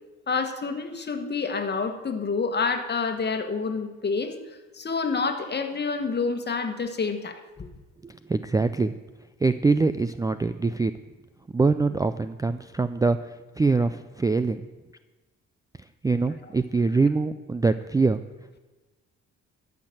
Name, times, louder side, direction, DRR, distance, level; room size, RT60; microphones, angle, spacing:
voice 1, 0.3-4.4 4.7-7.7 16.3-16.4, left 4 dB, 35° left, 6 dB, 1.5 m, -28 dB
voice 2, 8.0-8.9 9.4-10.9 11.5-14.6 16.0-18.2, right 3 dB, 10° right, 11 dB, 0.3 m, -24 dB
13.0 x 5.9 x 7.7 m, 1.2 s
cardioid pair, 90°, 30 cm